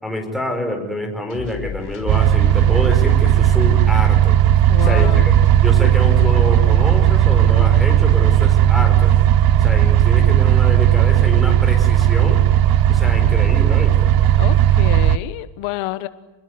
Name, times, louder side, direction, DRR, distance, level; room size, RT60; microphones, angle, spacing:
voice 1, 0.0-4.4 4.8-5.3 5.6-9.1 9.6-12.4 12.9-14.1, left 1 dB, ahead, 6 dB, 5.0 m, -26 dB
sound 1, 1.3-8.3, left 8 dB, 55° left, 5.7 m, -36 dB
sound 2, 2.1-15.2, right 11 dB, 45° right, 0.9 m, -14 dB
voice 2, 4.7-5.3 14.3-16.1, left 16 dB, 85° left, 13 dB, 1.4 m, -28 dB
28.0 x 20.5 x 9.6 m, 1.0 s
cardioid pair, 165°, 48 cm